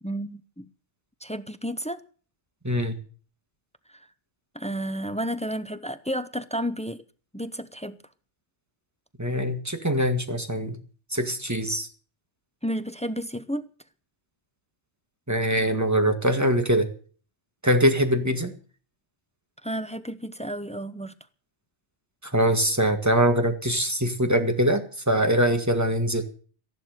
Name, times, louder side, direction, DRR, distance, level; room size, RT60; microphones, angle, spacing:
voice 1, 0.0-0.7 1.2-2.0 3.9-4.1 4.5-7.0 7.3-8.0 12.6-13.7 19.6-21.1, equal, 10° left, 0.4 m, -32 dB
voice 2, 2.6-3.0 9.2-10.8 11.1-11.9 15.3-16.9 17.6-18.5 22.3-26.2, equal, 15° right, 1.8 m, -23 dB
14.5 x 11.5 x 6.6 m
omnidirectional pair, 1.2 m